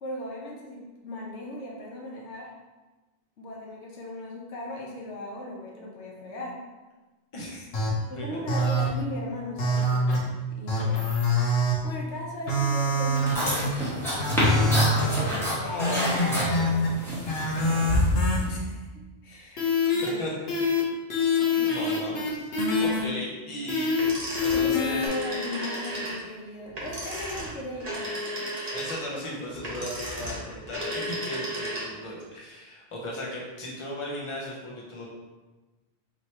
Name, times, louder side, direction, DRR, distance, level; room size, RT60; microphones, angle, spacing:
voice 1, 0.0-2.5 3.4-6.6 8.1-11.0 11.8-14.1 14.8-15.8 17.6-20.4 24.5-28.8 29.1-29.5, left 1 dB, 85° left, -2 dB, 1.1 m, -38 dB
voice 2, 7.3-7.7 8.1-8.4 15.6-17.1 20.2-20.9 21.5-22.5 22.8-23.9 24.4-25.1 28.7-35.1, left 1 dB, 30° left, -4 dB, 0.9 m, -36 dB
sound 1, 7.7-7.9 8.5-8.9 9.6-10.2 10.7-11.7 12.5-13.7 14.2-15.1 15.8-16.9 17.3-18.4 19.6-20.1 20.5-20.8 21.1-23.0 23.7-24.1 24.4-25.1, left 2 dB, 65° left, 1.1 m, -25 dB
sound 2, 13.2-18.5, left 1 dB, ahead, 1.2 m, -27 dB
sound 3, 23.9-32.1, right 1 dB, 40° right, 1.1 m, -34 dB
4.9 x 3.1 x 2.9 m, 1.2 s
omnidirectional pair, 1.1 m